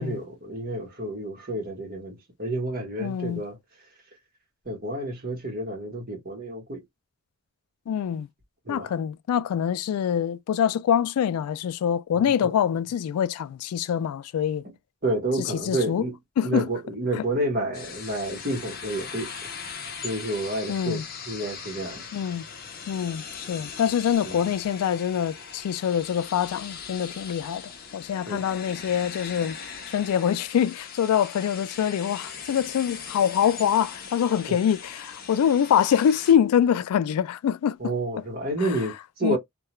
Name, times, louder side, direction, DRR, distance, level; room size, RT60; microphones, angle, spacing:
voice 1, 0.0-3.6 4.6-6.8 8.7-8.9 12.2-12.5 15.0-16.2 16.4-19.3 20.0-22.0 24.2-24.4 28.3-28.4 34.5-34.6 37.8-39.4, right 1 dB, 40° right, 1.1 m, -30 dB
voice 2, 3.0-3.4 7.9-8.3 8.7-14.6 15.7-16.0 16.4-16.7 17.2-17.3 20.7-21.0 22.1-22.5 22.9-29.6 29.9-37.8 38.6-38.7 39.2-39.4, left 9 dB, 90° left, 0.3 m, -25 dB
sound 1, 17.7-36.3, left 6 dB, 45° left, 0.6 m, -40 dB
2.3 x 2.2 x 2.9 m
head